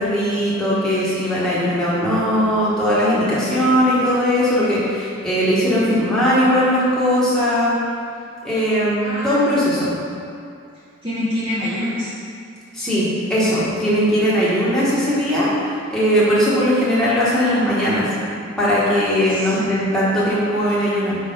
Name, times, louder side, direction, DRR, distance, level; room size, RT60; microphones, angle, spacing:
voice 1, 0.0-7.7 8.4-9.9 12.7-15.5 15.9-18.0 18.6-21.2, equal, 5° left, -10 dB, 1.3 m, -19 dB
voice 2, 9.0-9.4 11.0-12.1 15.4-15.6 19.1-19.7, left 1 dB, 25° right, -11 dB, 0.9 m, -26 dB
4.7 x 4.1 x 5.2 m, 2.4 s
head